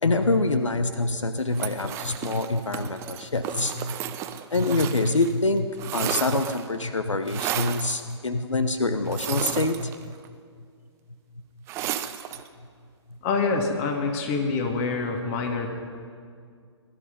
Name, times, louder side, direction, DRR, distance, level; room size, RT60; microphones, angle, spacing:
voice 1, 0.0-4.0 4.5-9.9, left 2 dB, 85° left, 9 dB, 0.9 m, -25 dB
sound 1, 1.5-5.3 5.6-6.7 7.3-7.9 9.1-10.3 11.7-12.5, right 11 dB, 15° right, 0.5 m, -33 dB
voice 2, 13.2-15.7, left 4 dB, 30° left, 3 dB, 2.2 m, -26 dB
20.5 x 11.5 x 5.4 m, 2.2 s
figure-of-eight pair, 130°, 15 cm